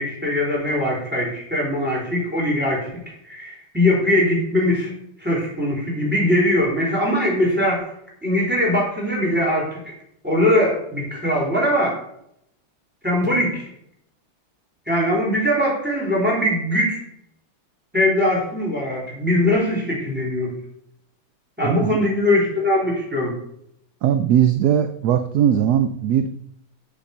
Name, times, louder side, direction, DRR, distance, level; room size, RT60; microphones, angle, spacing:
voice 1, 0.0-2.9 3.2-4.9 5.2-7.8 8.2-9.9 10.2-12.0 13.0-13.7 14.9-17.0 17.9-20.5 21.6-23.4, left 1 dB, 5° right, -4 dB, 3.8 m, -21 dB
voice 2, 21.6-22.0 24.0-26.3, right 9 dB, 70° right, 9 dB, 1.0 m, -19 dB
7.4 x 7.1 x 6.6 m, 0.73 s
omnidirectional pair, 2.2 m